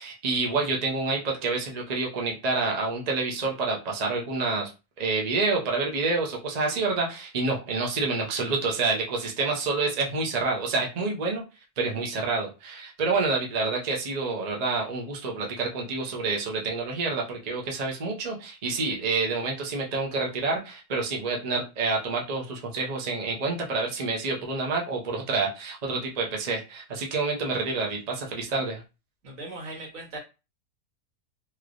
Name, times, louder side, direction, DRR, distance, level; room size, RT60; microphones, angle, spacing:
voice 1, 0.0-4.7 5.0-11.4 11.8-28.8, right 3 dB, 40° right, -1 dB, 0.6 m, -28 dB
voice 2, 29.2-30.2, right 2 dB, 60° right, -1 dB, 1.5 m, -38 dB
3.2 x 2.9 x 2.5 m, 0.29 s
omnidirectional pair, 1.6 m